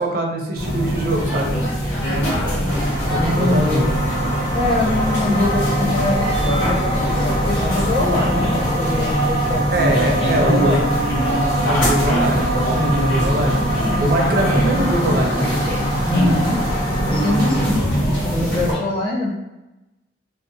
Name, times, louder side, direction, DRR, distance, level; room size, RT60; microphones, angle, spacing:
voice 1, 0.0-1.5 3.1-3.9 9.7-10.9 11.6-13.6 14.0-15.5, right 1 dB, 50° right, 1 dB, 0.5 m, -22 dB
sound 1, 0.5-18.7, equal, 75° left, 1.3 m, -22 dB
sound 2, 2.6-17.7, right 1 dB, 55° left, 1.2 m, -26 dB
voice 2, 2.6-3.9 4.5-11.0 16.0-16.6 17.1-17.8 18.3-19.3, left 2 dB, 25° left, -6 dB, 0.6 m, -23 dB
2.7 x 2.0 x 2.5 m, 1.0 s
head